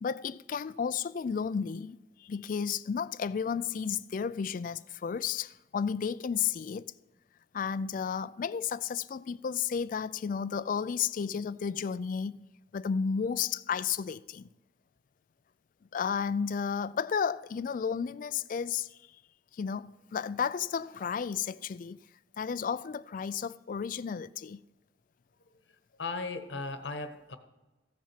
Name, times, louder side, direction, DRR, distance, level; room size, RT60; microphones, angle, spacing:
voice 1, 0.0-6.9 7.5-12.4 12.7-14.5 15.9-19.0 19.5-22.0 22.4-24.6, left 6 dB, 45° left, 0.3 m, -32 dB
voice 2, 26.0-27.4, left 3 dB, 75° left, 1.1 m, -36 dB
15.0 x 7.4 x 5.8 m
head